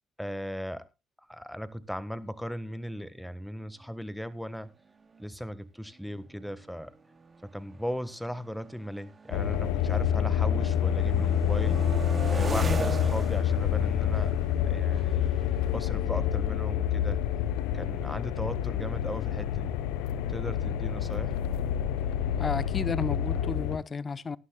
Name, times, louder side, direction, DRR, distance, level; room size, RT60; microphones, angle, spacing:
voice 1, 0.2-0.9 1.3-4.7 5.2-6.9 7.4-14.4 14.6-15.2 15.7-17.2 17.7-19.7 20.3-21.4, equal, ahead, 1.5 m, -37 dB
sound 1, 4.5-4.6 4.9-5.2 6.0-9.9 10.2-16.9, right 4 dB, 40° right, 2.7 m, -41 dB
sound 2, 9.3-23.8, left 9 dB, 90° left, 0.8 m, -27 dB
voice 2, 22.4-24.4, left 5 dB, 40° left, 0.7 m, -32 dB
18.5 x 11.5 x 2.3 m
supercardioid pair, 65°, 0 cm